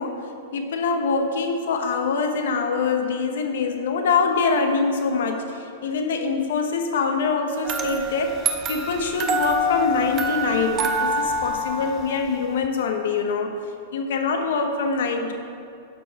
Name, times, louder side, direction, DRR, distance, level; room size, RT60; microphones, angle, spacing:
voice 1, 0.0-8.4 8.7-13.6 13.9-15.3, left 4 dB, 75° left, 5 dB, 0.9 m, -24 dB
sound 1, 7.6-12.7, right 1 dB, 25° right, 0.6 m, -26 dB
12.5 x 4.6 x 4.1 m, 2.5 s
supercardioid pair, 155°, 0 cm